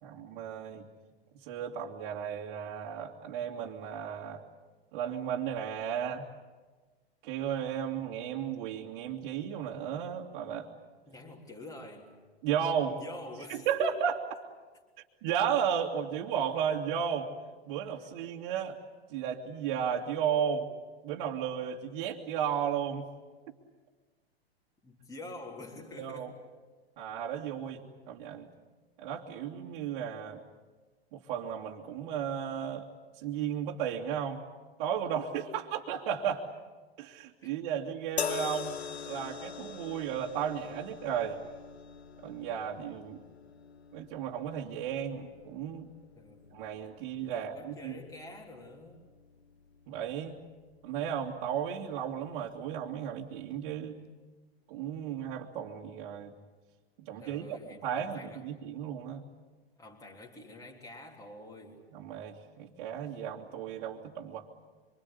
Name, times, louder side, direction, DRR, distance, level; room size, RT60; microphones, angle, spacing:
voice 1, 0.0-0.9 1.4-4.4 4.9-6.3 7.2-10.7 12.4-13.0 13.5-14.2 15.2-17.3 17.7-18.8 19.1-20.7 21.0-23.0 26.0-26.3 27.0-28.5 29.0-30.4 31.1-32.8 33.2-34.4 34.8-36.5 37.0-38.8 39.1-41.4 42.2-43.2 43.9-45.9 46.5-48.0 49.9-50.4 50.8-54.0 54.7-56.3 57.0-57.6 57.8-59.2 61.9-64.5, right 8 dB, 50° right, -3 dB, 2.4 m, -34 dB
voice 2, 11.1-12.2 13.0-14.0 18.0-18.1 24.8-26.3 37.4-37.8 46.0-46.5 47.2-49.1 57.1-58.5 59.8-61.9, left 2 dB, 10° left, -1 dB, 3.6 m, -47 dB
sound 1, 38.2-51.5 52.4-52.6, left 7 dB, 85° left, 0.9 m, -43 dB
25.5 x 25.0 x 8.4 m, 1.3 s
hypercardioid pair, 105°, 31 cm